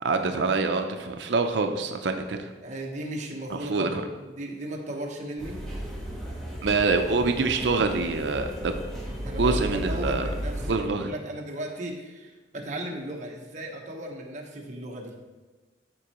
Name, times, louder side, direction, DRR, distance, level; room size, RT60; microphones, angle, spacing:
voice 1, 0.0-2.5 3.5-4.0 6.6-8.7 9.4-10.3 10.7-11.1, right 3 dB, 85° right, 6 dB, 0.5 m, -25 dB
voice 2, 2.6-5.6 9.2-15.1, right 1 dB, 45° right, 0 dB, 1.1 m, -36 dB
sound 1, 5.4-10.7, equal, 5° left, 1.4 m, -34 dB
13.0 x 4.5 x 3.0 m, 1.3 s
head